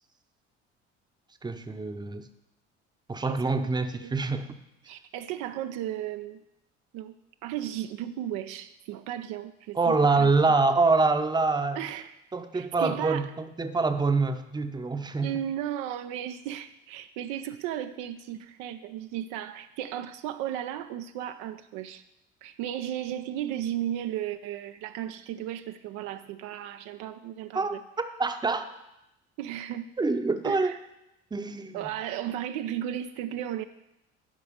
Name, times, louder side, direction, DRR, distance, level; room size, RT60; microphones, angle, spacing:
voice 1, 1.4-2.3 3.1-4.5 9.7-11.8 12.3-15.3 27.5-27.8 28.2-28.7 30.0-30.7 31.3-31.9, right 3 dB, 10° right, 8 dB, 0.8 m, -25 dB
voice 2, 3.3-3.7 4.0-4.2 4.9-6.4 6.9-7.2 7.4-10.3 11.8-12.1 12.5-13.3 15.2-22.0 22.4-27.8 29.4-29.9 30.4-30.8 31.7-33.6, right 11 dB, 65° right, 9 dB, 0.5 m, -35 dB
11.0 x 4.9 x 5.0 m, 0.88 s
hypercardioid pair, 60°, 34 cm